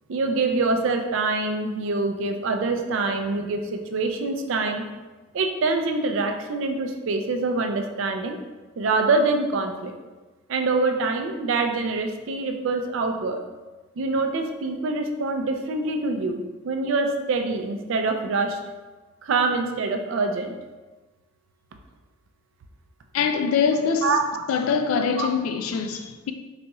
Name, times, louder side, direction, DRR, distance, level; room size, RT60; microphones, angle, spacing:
voice 1, 0.1-4.8 5.3-8.4 8.8-9.9 10.5-13.4 14.0-18.6 19.2-20.5 24.0-24.3 25.2-25.3, right 3 dB, 65° right, 0.4 m, -25 dB
voice 2, 23.1-24.2 24.5-26.3, left 6 dB, 85° left, 0.3 m, -23 dB
4.0 x 2.9 x 2.3 m
head